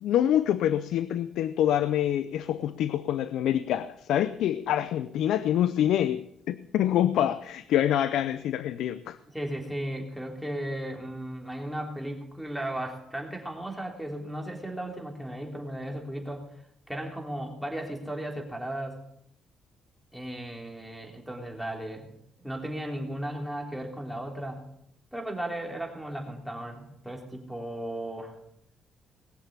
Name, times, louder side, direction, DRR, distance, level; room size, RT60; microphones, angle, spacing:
voice 1, 0.0-9.2, left 11 dB, 80° left, 0.6 m, -26 dB
voice 2, 9.3-16.5 16.9-19.0 20.1-22.1 22.4-24.6 25.1-28.4, right 1 dB, ahead, 3.4 m, -35 dB
20.0 x 7.4 x 8.3 m
cardioid pair, 90°, 0 cm